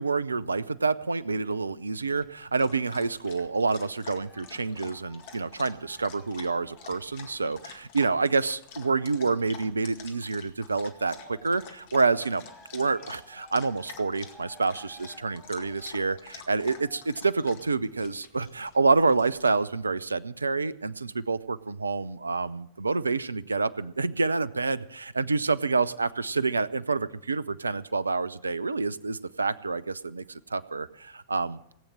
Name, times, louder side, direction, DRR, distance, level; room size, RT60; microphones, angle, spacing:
voice 1, 0.0-12.4 12.7-31.6, right 4 dB, 80° right, 19 dB, 0.5 m, -28 dB
Dog, 2.1-19.5, left 7 dB, 50° left, 1.9 m, -48 dB
Cheering, 4.1-10.4 10.8-17.4 18.0-18.1, left 1 dB, 10° left, 5.6 m, -56 dB
18.5 x 8.6 x 7.6 m, 0.73 s
figure-of-eight pair, 90°, 0 cm